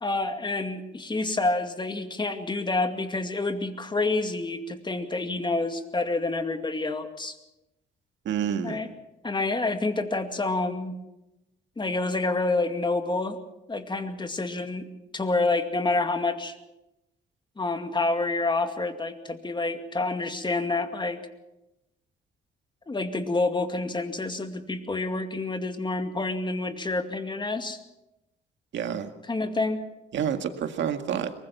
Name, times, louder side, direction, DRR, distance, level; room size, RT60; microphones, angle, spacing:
voice 1, 0.0-7.4 8.6-8.9 9.2-11.0 11.8-13.4 13.7-14.9 15.1-16.5 17.6-21.2 22.9-27.8 29.3-29.8, left 3 dB, 25° left, 7 dB, 2.3 m, -28 dB
voice 2, 8.2-8.8 28.7-29.1 30.1-31.3, right 8 dB, 70° right, 7 dB, 2.0 m, -28 dB
23.0 x 20.5 x 6.0 m, 0.93 s
cardioid pair, 90°, 20 cm